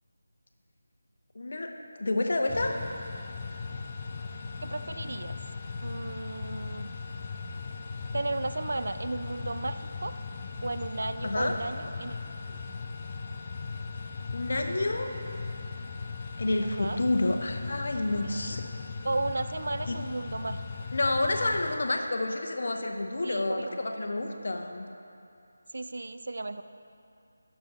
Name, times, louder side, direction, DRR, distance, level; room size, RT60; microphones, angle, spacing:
voice 1, 1.3-1.7 2.0-2.8 11.2-11.5 14.3-15.1 16.4-18.7 19.9-20.0 20.9-24.9, left 2 dB, 55° left, 4 dB, 0.8 m, -29 dB
sound 1, 2.5-21.8, left 4 dB, 30° left, 0.5 m, -38 dB
voice 2, 4.6-5.4 5.8-6.9 8.1-10.1 10.6-12.2 12.4-12.6 16.6-17.0 18.4-18.6 19.0-20.6 23.2-23.8 25.7-26.6, right 2 dB, 65° right, 10 dB, 0.3 m, -34 dB
13.0 x 6.6 x 3.0 m, 2.6 s
figure-of-eight pair, 160°, 0 cm